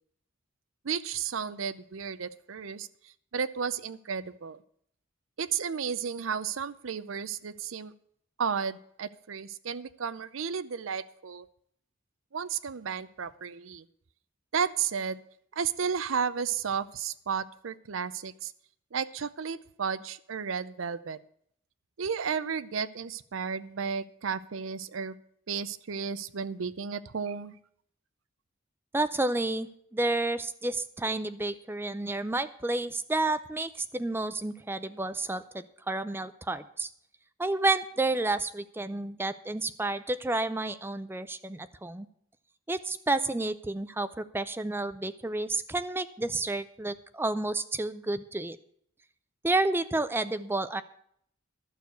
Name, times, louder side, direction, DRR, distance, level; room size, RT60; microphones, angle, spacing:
voice 1, 0.8-4.6 5.4-7.9 8.4-11.5 12.3-13.9 14.5-15.2 15.6-18.5 18.9-21.2 22.0-25.1 25.5-27.6, right 6 dB, 75° right, 15 dB, 0.6 m, -33 dB
voice 2, 28.9-36.9 37.4-42.1 42.7-48.6 49.4-50.8, right 2 dB, 10° right, 12 dB, 0.4 m, -30 dB
12.0 x 6.5 x 8.0 m, 0.67 s
head